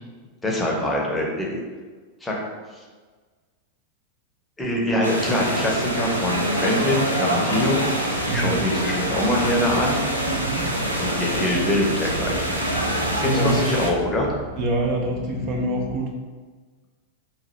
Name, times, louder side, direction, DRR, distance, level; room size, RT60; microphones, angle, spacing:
voice 1, 0.4-1.6 2.2-2.4 4.6-7.8 8.3-10.0 11.0-12.5 13.2-14.3, left 1 dB, 10° left, -2 dB, 0.8 m, -24 dB
sound 1, 5.0-13.9, right 1 dB, 85° right, 0.5 m, -25 dB
sound 2, 8.2-16.0, equal, 55° left, 0.5 m, -38 dB
voice 2, 10.4-10.7 13.2-13.6 14.6-16.1, right 1 dB, 40° right, 0 dB, 0.5 m, -25 dB
3.0 x 2.5 x 4.4 m, 1.4 s
figure-of-eight pair, 90°, 0 cm